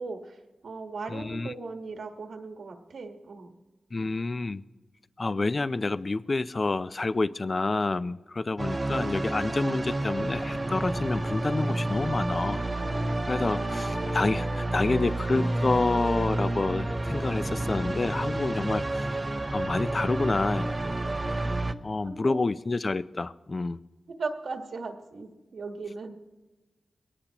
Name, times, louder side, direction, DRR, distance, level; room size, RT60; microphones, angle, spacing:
voice 1, 0.0-3.5 22.0-22.4 24.2-26.1, right 4 dB, 75° right, 4 dB, 1.4 m, -38 dB
voice 2, 1.1-1.5 3.9-4.6 5.2-12.6 13.3-19.0 19.5-20.8 21.8-23.8, left 3 dB, 35° left, 17 dB, 0.4 m, -28 dB
sound 1, 8.6-21.7, right 2 dB, 25° right, 0.6 m, -30 dB
Wind instrument woodwind instrument, 11.9-18.4, left 1 dB, 50° left, 1.9 m, -42 dB
22.5 x 18.0 x 2.9 m, 1.2 s
wide cardioid pair, 120°, 0 cm